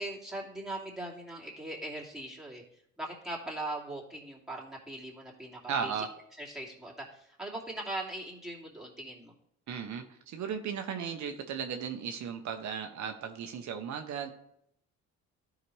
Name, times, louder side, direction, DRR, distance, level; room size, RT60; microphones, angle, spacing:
voice 1, 0.0-2.6 3.0-5.9 6.4-9.3, right 1 dB, ahead, -5 dB, 2.4 m, -40 dB
voice 2, 5.7-6.1 9.7-14.3, right 7 dB, 70° right, 5 dB, 0.8 m, -36 dB
12.0 x 4.9 x 3.2 m, 0.75 s
cardioid pair, 90°, 30 cm